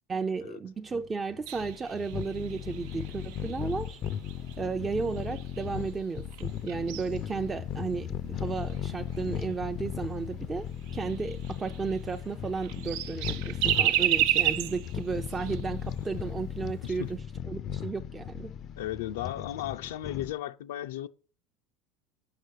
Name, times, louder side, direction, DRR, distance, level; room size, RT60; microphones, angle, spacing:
voice 1, 0.1-4.0 4.6-17.2 17.5-18.5, right 5 dB, 20° right, 0.5 m, -34 dB
sound 1, 0.9-20.3, left 10 dB, 45° left, 0.5 m, -37 dB
sound 2, 1.5-6.0 6.3-9.6 10.1-10.2 10.5-10.6 10.9-12.3 12.6-16.0 16.3-16.4 16.8-17.1, right 12 dB, 70° right, 0.5 m, -32 dB
voice 2, 16.8-17.2 18.8-21.1, left 13 dB, 90° left, 0.6 m, -35 dB
6.8 x 5.7 x 6.4 m
supercardioid pair, 110°, 0 cm